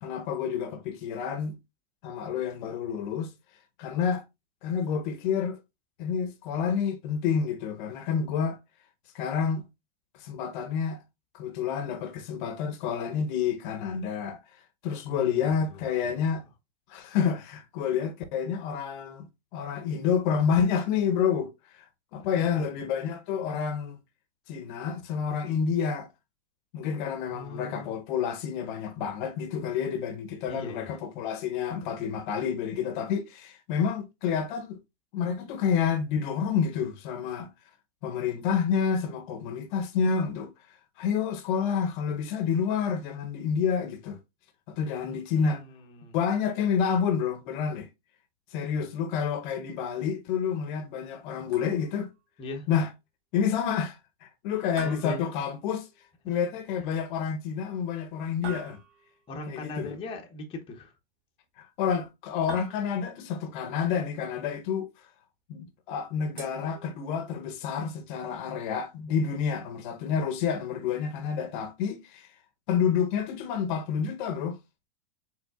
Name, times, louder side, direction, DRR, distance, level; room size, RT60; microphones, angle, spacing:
voice 1, 0.0-1.6 2.0-3.3 3.8-4.2 4.6-5.6 6.0-8.6 9.1-9.6 10.1-11.0 11.3-14.4 14.8-16.4 16.9-19.3 19.5-21.9 22.1-24.0 24.5-26.1 26.7-34.8 35.1-37.5 38.0-40.5 41.0-44.2 44.7-45.6 46.1-47.9 48.5-52.1 52.7-52.9 53.3-55.9 56.2-58.8 59.5-59.9 61.6-64.9 65.5-72.3 72.7-74.6, left 7 dB, 50° left, 0.8 m, -29 dB
voice 2, 15.1-16.2 22.2-22.6 27.3-28.0 30.4-30.9 45.1-46.2 52.4-52.7 54.5-55.3 59.3-61.0, left 2 dB, 15° left, 0.7 m, -40 dB
sound 1, 51.5-52.1 54.8-56.0 58.4-59.3 62.5-63.3 66.4-67.4, right 5 dB, 90° right, 2.0 m, -45 dB
4.4 x 3.7 x 2.3 m
hypercardioid pair, 135°, 32 cm